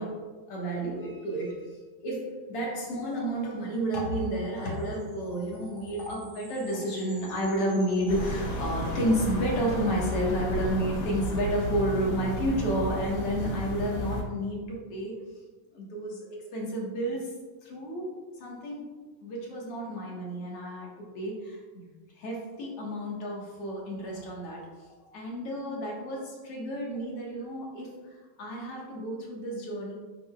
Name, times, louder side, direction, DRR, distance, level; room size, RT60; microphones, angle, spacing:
voice 1, 0.0-1.7 2.0-15.1 15.7-16.3 16.5-17.3 17.6-18.1 18.4-18.9 19.2-20.9 21.1-21.9 22.2-24.7 25.1-29.9, equal, 50° left, -3 dB, 1.9 m, -31 dB
sound 1, 4.6-9.2, right 1 dB, 30° right, 2.1 m, -52 dB
sound 2, 8.1-14.2, equal, 80° left, 3.7 m, -32 dB
10.5 x 6.8 x 2.4 m, 1.3 s
omnidirectional pair, 4.2 m